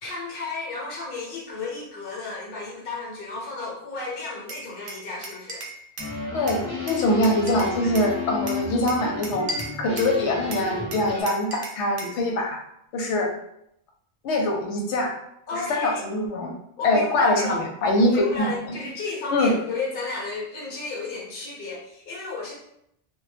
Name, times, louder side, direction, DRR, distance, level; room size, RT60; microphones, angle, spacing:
voice 1, 0.0-5.6 15.5-16.0 16.8-17.6 18.0-22.6, left 3 dB, 55° left, -3 dB, 0.9 m, -33 dB
Glass, 4.5-6.2 6.5-8.1 8.5-10.2 10.5-12.2, right 2 dB, 60° right, 0.7 m, -36 dB
sound 1, 6.0-11.2, left 5 dB, 5° right, 1.1 m, -32 dB
voice 2, 6.3-9.5 9.8-12.6 12.9-13.3 14.2-15.1 15.7-16.5 16.8-18.5 19.3-19.5, left 1 dB, 85° left, 1 dB, 0.9 m, -23 dB
2.1 x 2.1 x 3.2 m, 0.76 s
omnidirectional pair, 1.1 m